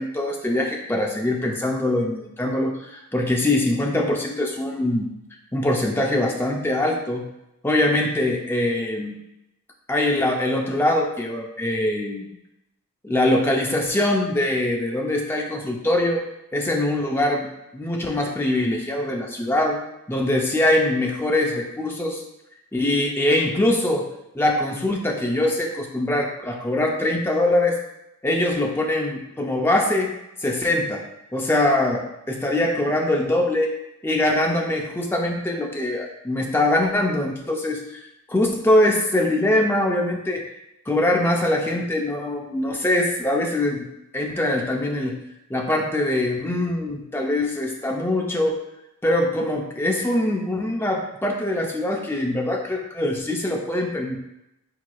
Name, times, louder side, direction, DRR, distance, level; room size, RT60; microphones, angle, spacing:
voice 1, 0.0-5.1 5.5-7.2 7.6-9.2 9.9-12.3 13.0-16.2 16.5-19.8 20.1-22.2 22.7-24.1 24.3-27.8 28.2-30.1 30.4-31.1 31.3-33.7 34.0-38.0 38.3-40.4 40.9-43.9 44.1-45.2 45.5-48.6 49.0-54.2, left 1 dB, 10° left, 0 dB, 0.4 m, -23 dB
4.7 x 4.1 x 2.2 m, 0.87 s
head